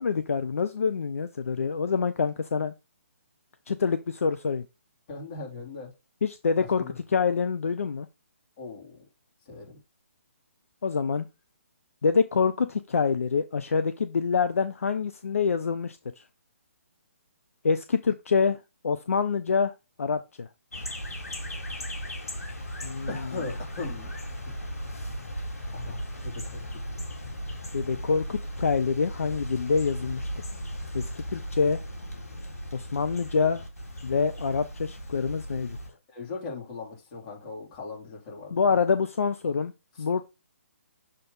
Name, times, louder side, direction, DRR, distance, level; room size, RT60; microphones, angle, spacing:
voice 1, 0.0-2.7 3.7-4.6 6.2-8.1 10.8-11.3 12.0-16.0 17.6-18.6 18.8-19.7 20.0-20.5 22.8-23.1 27.7-30.3 30.9-31.8 32.7-33.6 34.0-35.8 38.5-39.7 40.0-40.2, left 5 dB, 70° left, 0.5 m, -26 dB
voice 2, 5.1-5.9 6.6-7.0 8.6-9.0 9.5-9.8 23.1-24.1 24.5-24.6 25.7-26.8 36.1-38.6, left 4 dB, 35° left, 3.2 m, -39 dB
sound 1, 20.7-35.9, equal, 85° left, 2.0 m, -37 dB
6.7 x 3.7 x 3.8 m
figure-of-eight pair, 140°, 8 cm